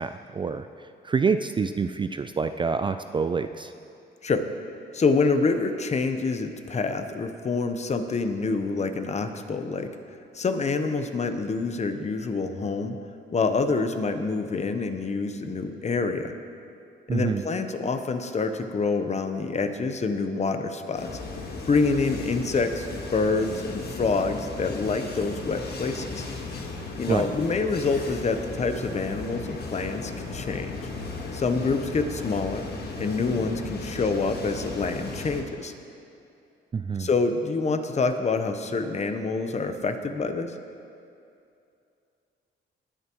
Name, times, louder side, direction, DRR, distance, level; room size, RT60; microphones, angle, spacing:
voice 1, 0.0-3.7 17.1-17.4 27.1-27.3 36.7-37.1, right 5 dB, 25° right, 9 dB, 0.3 m, -27 dB
voice 2, 4.9-9.9 10.3-13.0 13.3-16.3 17.1-21.2 21.7-22.9 23.1-26.3 27.0-30.8 31.3-32.7 33.0-35.7 37.0-40.5, left 4 dB, 35° left, 8 dB, 0.9 m, -26 dB
sound 1, 20.9-35.4, left 3 dB, 55° left, 1.6 m, -36 dB
19.5 x 9.5 x 3.1 m, 2.6 s
cardioid pair, 90°, 20 cm